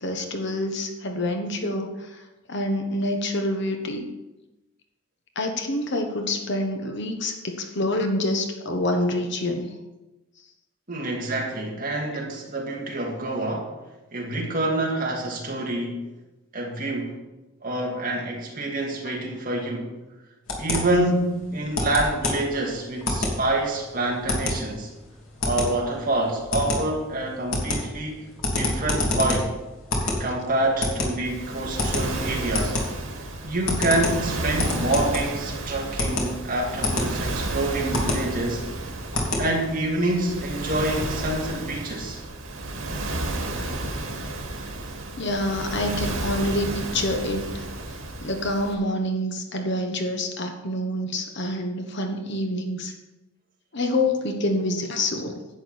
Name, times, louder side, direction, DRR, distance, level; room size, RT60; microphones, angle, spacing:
voice 1, 0.0-2.1 2.5-4.1 5.3-9.7 45.2-47.6 48.2-52.9 53.7-55.3, left 1 dB, 55° left, 4 dB, 1.3 m, -27 dB
voice 2, 10.9-13.7 14.1-16.1 16.5-17.1 17.6-19.9 20.6-24.9 25.4-28.3 28.5-29.5 30.2-32.8 33.4-38.6 39.4-42.2, right 2 dB, 40° right, -2 dB, 2.5 m, -27 dB
sound 1, 20.5-39.9, left 2 dB, 80° left, 2.8 m, -28 dB
Waves surf, 31.2-48.7, right 2 dB, 90° right, 2.1 m, -32 dB
11.0 x 8.8 x 4.4 m, 1.0 s
head